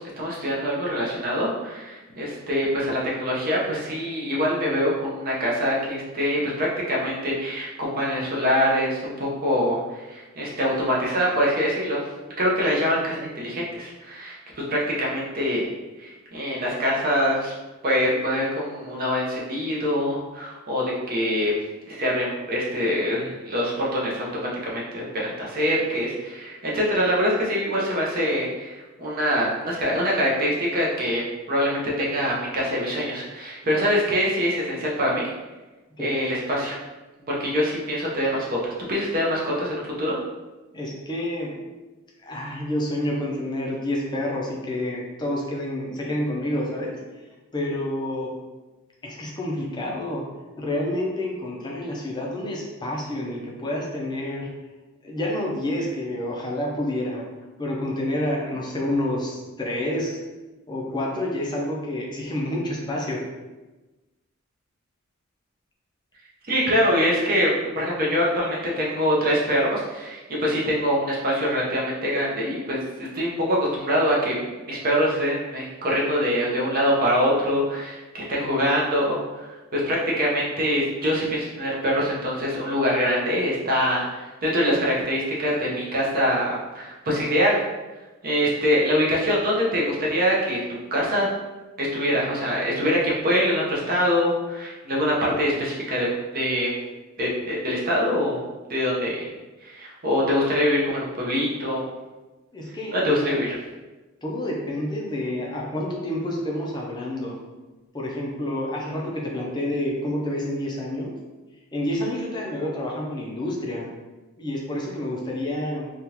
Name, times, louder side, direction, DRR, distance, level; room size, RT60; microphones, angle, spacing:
voice 1, 0.0-12.0 12.4-15.7 16.0-17.5 17.8-21.5 21.9-31.2 31.5-35.3 36.0-36.8 37.3-38.6 38.9-40.2 66.4-87.6 88.2-91.3 91.8-96.1 96.3-96.7 97.2-98.4 98.7-99.3 99.6-101.9 102.9-103.6, equal, 45° right, -5 dB, 0.8 m, -24 dB
voice 2, 40.7-41.6 42.2-47.0 47.5-48.3 49.0-50.2 50.6-54.5 55.0-57.3 57.6-60.2 60.7-63.2 102.5-103.4 104.2-107.4 107.9-111.1 111.7-113.9 114.4-115.9, left 1 dB, 20° left, -2 dB, 0.5 m, -28 dB
3.5 x 2.4 x 2.9 m, 1.2 s
head